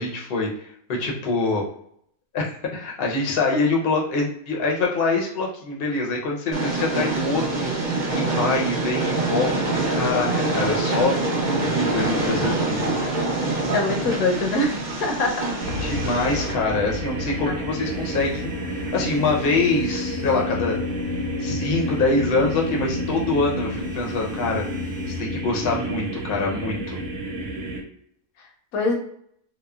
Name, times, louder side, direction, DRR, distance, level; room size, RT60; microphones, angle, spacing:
voice 1, 0.0-1.6 2.3-2.5 2.7-11.1 11.4-13.0 15.8-20.8 21.4-24.6 25.2-27.0, left 3 dB, 55° left, -1 dB, 0.7 m, -25 dB
Train, 6.5-16.5, right 2 dB, 40° right, 0.8 m, -25 dB
sound 1, 11.3-25.2, equal, 55° right, 0.4 m, -38 dB
voice 2, 13.7-15.3 17.5-17.6 28.7-29.0, left 2 dB, 85° left, 1 dB, 1.1 m, -23 dB
sound 2, 15.6-27.8, left 1 dB, 85° right, 1.1 m, -30 dB
3.0 x 2.0 x 2.3 m, 0.68 s
omnidirectional pair, 1.5 m